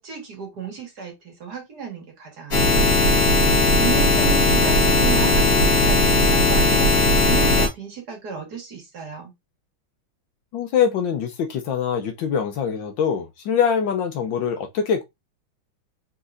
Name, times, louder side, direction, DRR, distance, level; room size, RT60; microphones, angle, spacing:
voice 1, 0.0-3.1 3.8-9.3, right 6 dB, 50° right, 2.0 m, -33 dB
sound 1, 2.5-7.7, left 2 dB, 45° left, 2.0 m, -17 dB
voice 2, 10.5-15.0, left 7 dB, 70° left, 1.4 m, -23 dB
4.5 x 4.1 x 2.6 m
omnidirectional pair, 2.3 m